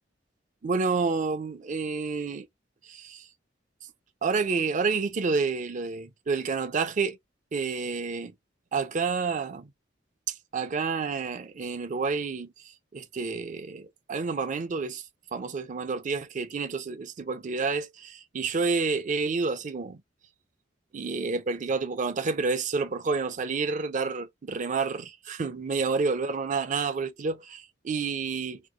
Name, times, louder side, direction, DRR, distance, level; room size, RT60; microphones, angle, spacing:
voice 1, 0.6-2.5 2.9-3.3 4.2-7.2 7.5-8.3 8.7-9.7 10.5-12.5 12.9-15.0 15.3-20.0 20.9-28.6, right 4 dB, 45° right, 0.5 m, -29 dB
3.0 x 2.1 x 3.6 m
head